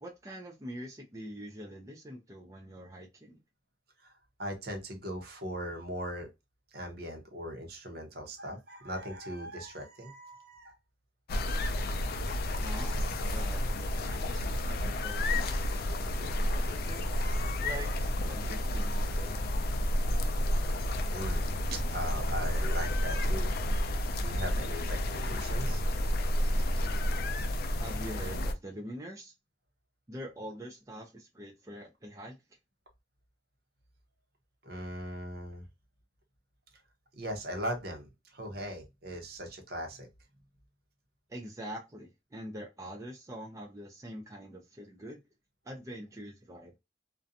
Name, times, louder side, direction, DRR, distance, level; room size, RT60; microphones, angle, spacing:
voice 1, 0.0-3.4 12.6-17.1 17.6-19.3 27.8-29.3 30.1-32.4 41.3-45.2 45.6-46.7, equal, 15° right, 0.4 m, -44 dB
voice 2, 4.0-6.3 6.7-10.8 20.7-20.8 21.1-23.5 24.2-25.8 34.6-35.6 37.1-40.1, equal, 55° right, 0.8 m, -39 dB
sound 1, 11.3-28.5, left 1 dB, 55° left, 0.4 m, -30 dB
2.5 x 2.2 x 2.5 m
head